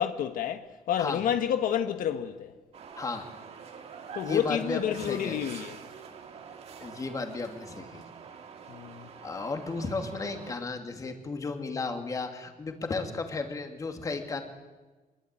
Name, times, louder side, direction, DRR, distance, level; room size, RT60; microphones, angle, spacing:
voice 1, 0.0-2.5 4.1-5.7 8.7-9.1, left 9 dB, 70° left, 1.4 m, -29 dB
sound 1, 2.7-10.5, right 6 dB, 45° right, 2.4 m, -46 dB
voice 2, 3.0-3.3 4.2-5.4 6.8-8.1 9.2-14.4, left 3 dB, 25° left, 2.6 m, -34 dB
25.0 x 22.5 x 9.1 m
cardioid pair, 175°, 15 cm